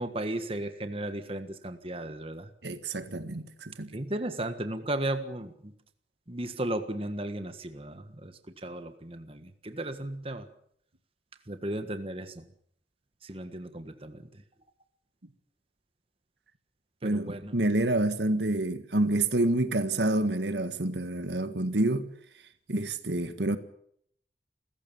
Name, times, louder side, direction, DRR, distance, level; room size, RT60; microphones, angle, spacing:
voice 1, 0.0-2.5 3.9-5.7 6.3-10.5 11.5-12.5 13.2-14.2 17.0-17.5, right 1 dB, 30° right, 1.5 m, -35 dB
voice 2, 2.6-3.9 17.0-22.1 22.7-23.6, right 2 dB, 75° right, 1.7 m, -28 dB
28.5 x 15.0 x 7.2 m
head